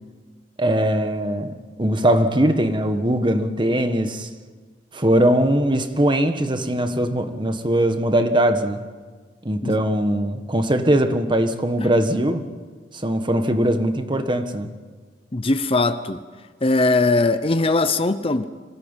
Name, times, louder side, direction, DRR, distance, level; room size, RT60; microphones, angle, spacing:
voice 1, 0.6-1.5 1.8-4.3 4.9-8.8 9.4-12.5 12.9-14.7, right 1 dB, 30° right, 1.5 m, -20 dB
voice 2, 15.3-16.2 16.6-18.5, left 2 dB, 35° left, 0.8 m, -20 dB
25.5 x 17.5 x 9.1 m
head